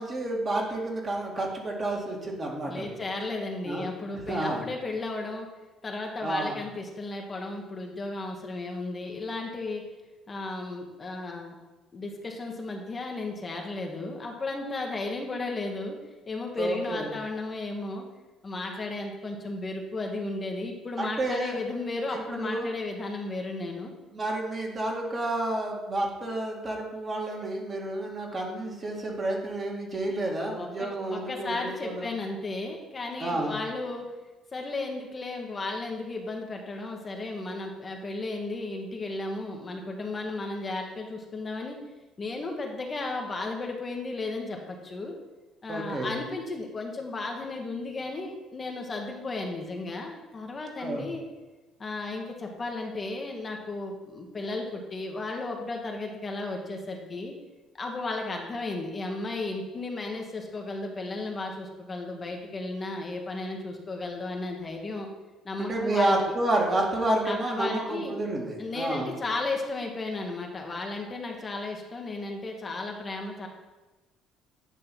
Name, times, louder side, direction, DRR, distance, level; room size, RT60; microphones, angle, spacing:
voice 1, 0.0-3.0 3.6-3.9 4.1-4.6 6.2-6.6 16.6-17.1 21.0-21.6 22.1-22.7 24.1-32.1 33.2-33.6 45.7-46.1 50.8-51.0 65.6-69.1, right 2 dB, 35° right, -1 dB, 1.9 m, -30 dB
voice 2, 2.7-5.5 5.8-9.8 10.3-11.5 11.9-16.0 16.3-18.1 18.4-23.9 30.5-34.1 34.5-41.8 42.2-45.1 45.6-51.2 51.8-57.3 57.8-65.1 65.4-66.1 67.3-68.1 68.6-73.5, left 2 dB, 35° left, 1 dB, 1.2 m, -34 dB
9.2 x 3.2 x 5.8 m, 1.1 s
hypercardioid pair, 65°, 0 cm